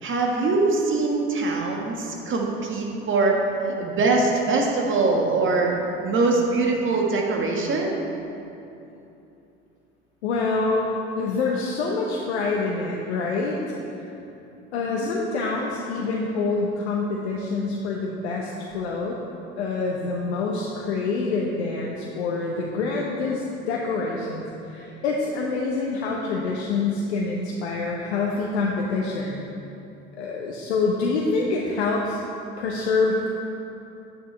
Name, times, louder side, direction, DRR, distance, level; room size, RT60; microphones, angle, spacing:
voice 1, 0.0-5.7 6.0-7.9 15.0-15.1, right 3 dB, 35° right, 0 dB, 1.6 m, -23 dB
voice 2, 10.2-14.1 14.7-19.2 19.5-29.5 30.2-32.2 32.6-33.3, left 3 dB, 75° left, -2 dB, 0.9 m, -26 dB
9.2 x 9.1 x 3.4 m, 2.9 s
hypercardioid pair, 70°, 33 cm